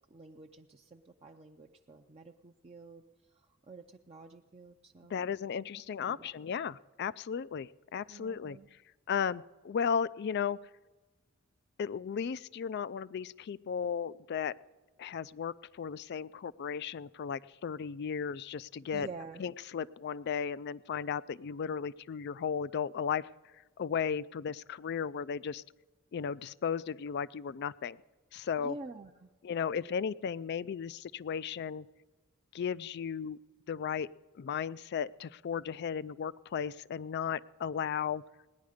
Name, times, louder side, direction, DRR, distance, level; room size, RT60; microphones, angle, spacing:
voice 1, 0.0-3.0 3.7-5.2 6.1-6.3 8.1-8.7 18.9-19.4 28.6-29.3, right 3 dB, 30° right, 2 dB, 0.5 m, -48 dB
voice 2, 5.1-8.6 9.1-10.6 11.8-14.5 15.0-19.1 19.4-23.3 23.8-25.6 26.1-28.0 28.3-28.8 29.4-31.9 32.5-33.4 33.7-34.1 34.3-38.2, left 7 dB, 50° left, 19 dB, 0.3 m, -35 dB
18.5 x 10.5 x 5.0 m, 1.2 s
head